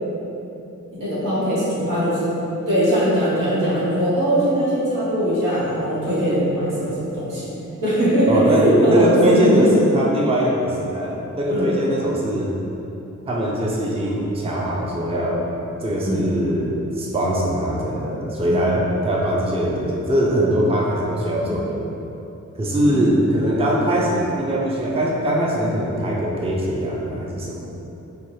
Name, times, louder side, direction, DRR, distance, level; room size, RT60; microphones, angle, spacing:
voice 1, 0.9-2.3 2.7-7.5 7.8-9.7 11.5-11.7 16.0-16.2 18.5-18.6 22.8-23.0, equal, 90° right, -9 dB, 1.2 m, -20 dB
voice 2, 8.3-12.5 13.3-15.5 15.8-21.8 22.6-27.6, right 1 dB, 20° right, -4 dB, 0.5 m, -21 dB
4.3 x 2.3 x 3.1 m, 2.9 s
cardioid pair, 80°, 31 cm